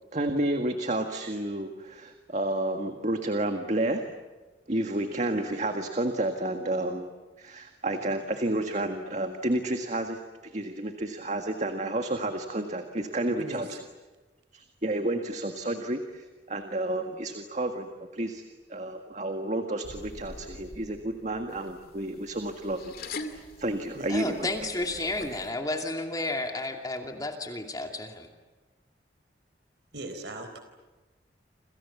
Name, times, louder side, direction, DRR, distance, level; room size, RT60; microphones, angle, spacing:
voice 1, 0.1-4.1 4.7-7.1 7.4-13.7 14.5-18.4 18.7-22.9 23.3-24.5, right 1 dB, 40° right, 5 dB, 1.8 m, -31 dB
voice 2, 13.4-13.8 23.9-24.1 29.9-30.6, right 1 dB, 80° right, 7 dB, 4.1 m, -39 dB
sound 1, 19.8-25.5, left 2 dB, 55° left, 2.4 m, -44 dB
voice 3, 24.1-28.3, left 2 dB, 20° left, 3 dB, 2.6 m, -32 dB
29.0 x 27.5 x 7.3 m, 1.2 s
head